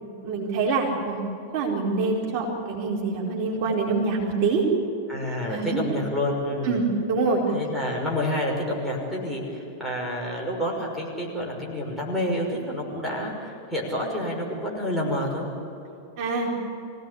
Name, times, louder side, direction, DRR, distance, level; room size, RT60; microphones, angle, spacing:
voice 1, 0.2-1.2 1.5-4.6 5.5-5.8 6.6-7.4 16.2-16.5, right 4 dB, 45° right, -3 dB, 4.7 m, -25 dB
voice 2, 5.1-6.8 7.5-15.4, left 1 dB, 5° left, -3 dB, 6.2 m, -29 dB
25.0 x 17.5 x 8.6 m, 2.8 s
figure-of-eight pair, 90°, 0 cm